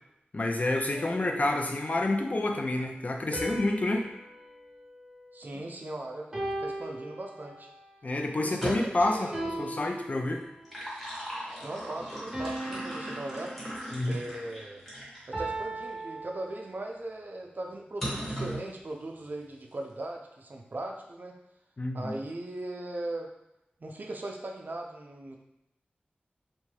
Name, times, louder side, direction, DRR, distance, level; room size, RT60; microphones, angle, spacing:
voice 1, 0.3-4.1 8.0-10.4 13.9-14.2 21.8-22.1, left 2 dB, 45° left, 2 dB, 0.4 m, -28 dB
sound 1, 0.9-2.1 3.3-5.8 6.3-7.8 9.3-10.8 12.3-14.2 15.3-17.0, right 1 dB, 20° right, 0.9 m, -39 dB
voice 2, 5.3-7.7 8.4-9.7 11.6-13.6 14.0-14.8 15.3-21.4 21.9-23.3 23.8-25.4, right 2 dB, 55° right, 1 dB, 0.4 m, -39 dB
sound 2, 8.5-9.1 10.4-15.3 15.9-16.0 18.0-18.7, equal, 10° left, 1.2 m, -38 dB
2.7 x 2.2 x 3.1 m, 0.87 s
wide cardioid pair, 50°, 4 cm